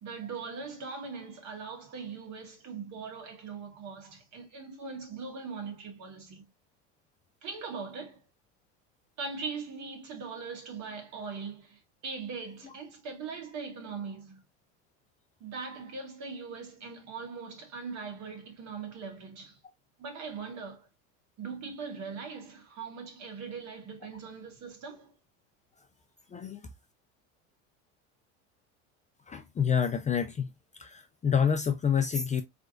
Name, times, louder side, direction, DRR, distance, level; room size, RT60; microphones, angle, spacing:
voice 1, 0.0-6.4 7.4-8.2 9.2-14.4 15.4-19.6 20.0-20.9 21.4-25.1, right 5 dB, 50° right, 2.0 m, -40 dB
voice 2, 26.3-26.6 29.3-30.5 30.8-32.4, left 7 dB, 20° left, 0.5 m, -28 dB
4.6 x 3.4 x 2.6 m
supercardioid pair, 100°, 36 cm